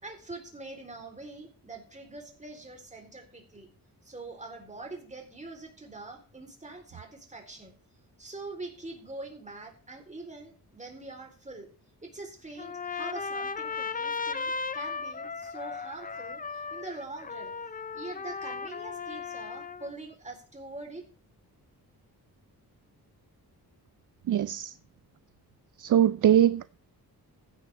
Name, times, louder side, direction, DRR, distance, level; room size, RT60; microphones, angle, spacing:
voice 1, 0.0-3.7 4.0-7.8 8.2-11.7 12.0-17.6 17.9-21.0, right 2 dB, 20° right, 3.5 m, -43 dB
Trumpet, 12.6-19.9, left 5 dB, 20° left, 0.6 m, -36 dB
voice 2, 24.3-24.7 25.8-26.8, right 10 dB, 55° right, 0.5 m, -22 dB
15.0 x 10.0 x 3.3 m
cardioid pair, 90°, 38 cm